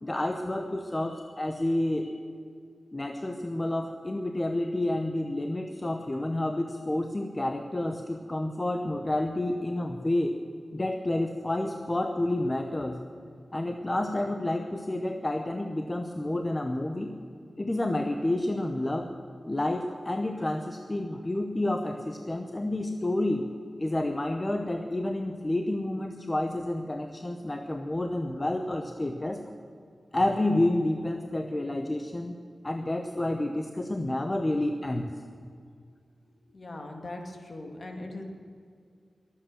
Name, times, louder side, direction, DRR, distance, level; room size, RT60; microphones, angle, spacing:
voice 1, 0.0-2.2 2.9-10.4 10.7-13.0 13.5-17.2 17.6-19.1 19.5-23.5 23.8-29.4 30.1-32.3 32.6-35.1, left 1 dB, 25° left, 5 dB, 0.9 m, -29 dB
voice 2, 36.5-38.2, left 2 dB, 50° left, 3 dB, 2.2 m, -40 dB
22.5 x 8.7 x 6.4 m, 2.2 s
wide cardioid pair, 95°, 0 cm